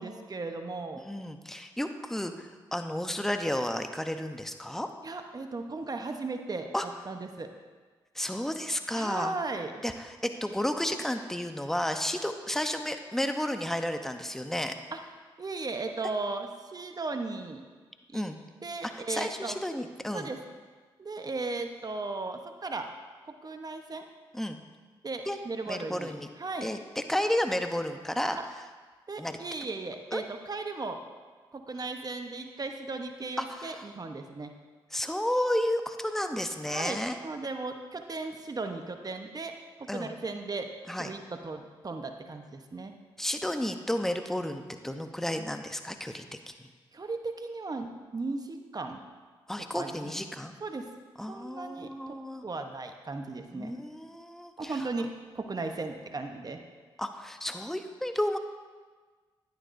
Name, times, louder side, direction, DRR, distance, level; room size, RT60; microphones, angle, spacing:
voice 1, 0.0-1.0 5.0-6.7 7.1-7.5 8.9-9.7 14.9-15.0 15.4-17.6 18.1-18.2 18.6-19.6 20.1-20.4 21.0-22.9 23.2-24.1 25.0-26.7 28.3-28.4 29.1-31.0 31.5-34.5 36.7-40.7 41.0-42.9 46.9-49.0 49.7-50.1 50.6-50.9 51.3-51.9 52.4-53.7 54.6-56.6, right 3 dB, 40° right, 5 dB, 1.0 m, -36 dB
voice 2, 1.0-4.9 6.7-6.9 8.1-9.3 9.8-14.7 18.1-18.4 18.9-20.3 24.3-24.6 25.3-25.4 25.6-26.3 26.6-28.4 29.2-29.4 30.1-30.2 33.4-33.9 34.9-37.2 39.9-40.1 40.9-41.1 43.2-46.5 49.5-50.5 51.2-52.4 53.5-54.9 57.0-58.4, left 1 dB, 5° left, 6 dB, 0.8 m, -32 dB
11.5 x 10.5 x 2.7 m, 1.4 s
supercardioid pair, 45°, 10 cm